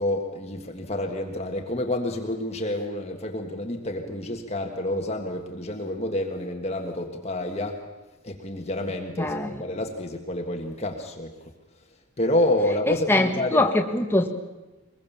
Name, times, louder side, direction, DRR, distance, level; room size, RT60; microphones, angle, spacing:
voice 1, 0.0-7.8 8.2-11.3 12.2-13.6, left 1 dB, 30° left, 3 dB, 1.6 m, -28 dB
voice 2, 9.2-9.6 13.1-14.3, left 2 dB, 10° left, 3 dB, 1.6 m, -22 dB
23.0 x 22.0 x 7.2 m, 1.1 s
head